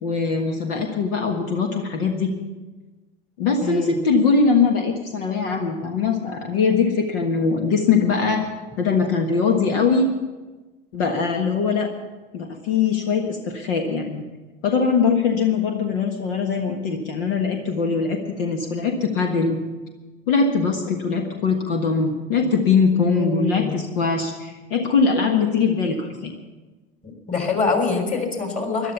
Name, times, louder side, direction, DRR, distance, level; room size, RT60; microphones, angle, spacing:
voice 1, 0.0-2.3 3.4-8.5 8.8-10.1 10.9-11.9 12.3-14.2 14.6-19.6 20.3-26.3, left 5 dB, 70° left, 3 dB, 1.6 m, -21 dB
voice 2, 3.6-4.0 23.1-23.8 27.0-28.9, left 4 dB, 25° left, 4 dB, 3.7 m, -25 dB
14.0 x 12.0 x 7.0 m, 1.2 s
hypercardioid pair, 80°, 29 cm